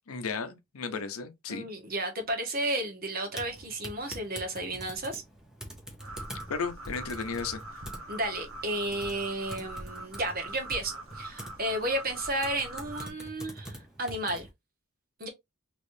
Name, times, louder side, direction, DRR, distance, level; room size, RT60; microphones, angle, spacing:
voice 1, 0.1-1.7 6.5-7.6, left 5 dB, 80° left, 0.6 m, -34 dB
voice 2, 1.5-5.2 8.1-14.5 15.2-15.3, right 1 dB, 45° right, 1.1 m, -33 dB
Typing, 3.3-14.5, right 1 dB, 5° right, 0.8 m, -46 dB
sound 1, 6.0-13.1, right 1 dB, 65° right, 1.0 m, -43 dB
3.3 x 3.0 x 2.6 m
head